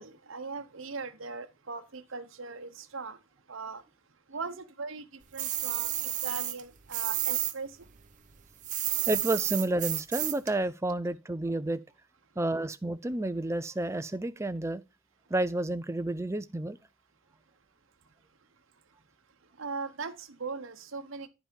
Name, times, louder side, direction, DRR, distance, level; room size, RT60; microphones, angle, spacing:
voice 1, 0.0-7.9 18.7-18.9 19.4-21.3, right 4 dB, 65° right, 0.9 m, -40 dB
sound 1, 5.4-7.5 7.8-10.5, right 13 dB, 35° right, 0.8 m, -31 dB
voice 2, 9.1-11.8 12.4-14.8 15.3-16.8, right 2 dB, 15° right, 0.4 m, -30 dB
10.0 x 5.4 x 4.4 m
head